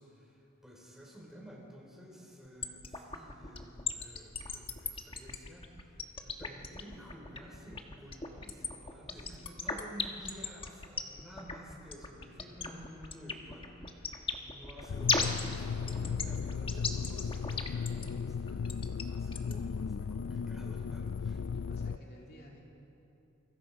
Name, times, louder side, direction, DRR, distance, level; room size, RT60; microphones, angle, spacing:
voice 1, 0.0-21.4, equal, ahead, -3 dB, 5.0 m, -52 dB
sound 1, 2.6-19.6, left 4 dB, 25° left, 1.4 m, -36 dB
voice 2, 9.1-9.4 21.5-22.6, equal, 50° left, -1 dB, 2.8 m, -54 dB
sound 2, 14.9-22.0, left 6 dB, 75° left, 0.4 m, -36 dB
29.0 x 24.0 x 5.1 m, 3.0 s
head